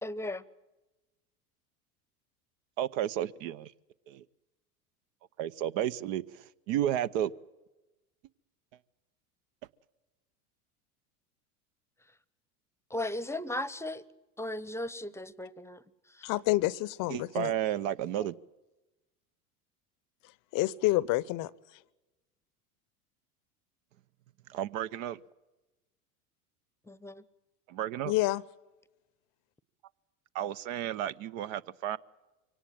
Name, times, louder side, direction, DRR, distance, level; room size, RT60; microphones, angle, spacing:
voice 1, 0.0-0.4 12.9-14.0 14.4-15.8 16.1-16.3 26.9-27.2, left 1 dB, 5° left, 20 dB, 0.9 m, -36 dB
voice 2, 2.8-3.7 4.1-4.2 5.4-7.3 17.1-18.3 24.5-25.2 27.7-28.1 30.3-32.0, right 11 dB, 60° right, 15 dB, 0.9 m, -32 dB
voice 3, 16.2-17.5 20.5-21.5 28.0-28.4, left 18 dB, 45° left, 22 dB, 0.8 m, -28 dB
24.0 x 18.0 x 8.6 m, 1.1 s
hypercardioid pair, 85°, 45 cm